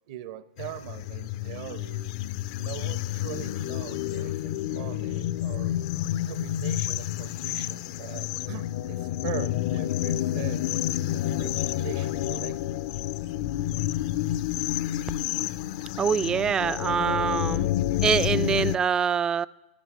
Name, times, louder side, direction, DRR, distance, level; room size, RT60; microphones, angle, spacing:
voice 1, 0.1-2.1 2.6-5.7 6.3-10.6 11.4-12.8, right 13 dB, 55° right, 15 dB, 0.8 m, -41 dB
sound 1, 0.6-18.8, left 13 dB, 55° left, 0.4 m, -29 dB
voice 2, 16.0-17.7 18.0-19.5, right 7 dB, 20° right, 19 dB, 0.4 m, -24 dB
11.0 x 10.5 x 9.1 m, 1.1 s
hypercardioid pair, 95°, 3 cm